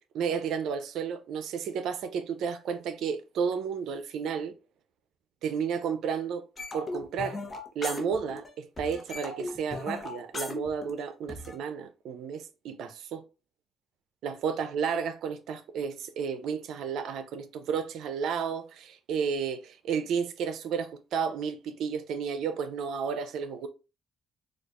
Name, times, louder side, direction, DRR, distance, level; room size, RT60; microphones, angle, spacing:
voice 1, 0.2-4.6 5.4-6.4 6.7-7.4 7.8-13.2 14.2-23.7, right 6 dB, 80° right, 0.4 m, -32 dB
sound 1, 6.6-8.5 8.8-11.6, left 2 dB, 35° left, 0.8 m, -37 dB
4.3 x 2.3 x 2.4 m
cardioid pair, 90°, 0 cm